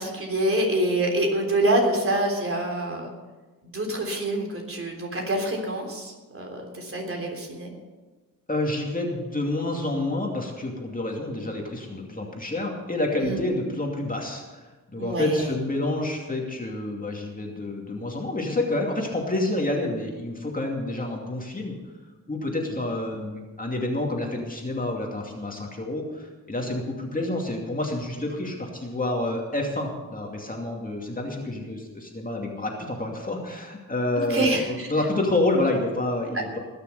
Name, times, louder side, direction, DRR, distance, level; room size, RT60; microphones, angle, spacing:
voice 1, 0.0-3.1 3.6-7.7 13.2-13.4 15.0-15.5 34.2-34.9 36.3-36.4, right 1 dB, 40° right, 1 dB, 3.6 m, -26 dB
voice 2, 8.5-21.8 22.3-36.6, left 2 dB, 25° left, 0 dB, 2.5 m, -28 dB
20.0 x 6.9 x 6.8 m, 1.2 s
cardioid pair, 90°, 34 cm